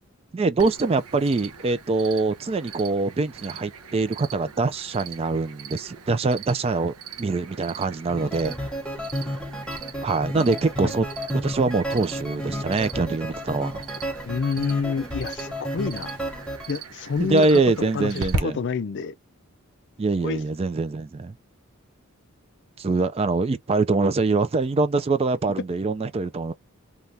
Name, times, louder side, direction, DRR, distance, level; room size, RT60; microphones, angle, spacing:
voice 1, 0.3-8.5 10.0-13.8 17.2-18.6 20.0-21.3 22.8-26.5, right 3 dB, 25° right, 0.3 m, -24 dB
Cricket, 0.6-18.4, right 4 dB, 80° right, 0.8 m, -39 dB
sound 1, 8.1-16.7, equal, 5° left, 0.9 m, -32 dB
voice 2, 14.2-16.1 16.7-19.1 20.2-20.4, left 5 dB, 50° left, 0.4 m, -28 dB
3.3 x 2.3 x 2.7 m
head